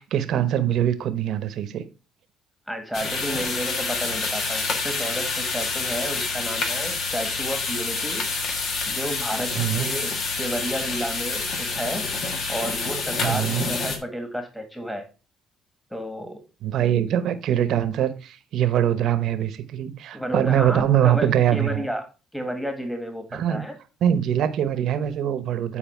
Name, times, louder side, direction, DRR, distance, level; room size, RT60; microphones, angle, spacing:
voice 1, 0.0-1.9 9.6-9.9 13.2-13.7 16.6-21.9 23.3-23.6 24.0-25.8, right 10 dB, 70° right, 1.0 m, -23 dB
voice 2, 2.7-8.3 8.9-9.5 9.7-12.0 12.5-15.1 15.9-16.4 20.1-22.0 22.3-23.8, equal, ahead, 1.7 m, -31 dB
sound 1, 2.9-14.0, left 4 dB, 65° left, 1.8 m, -28 dB
9.3 x 4.4 x 4.4 m
supercardioid pair, 75°, 0 cm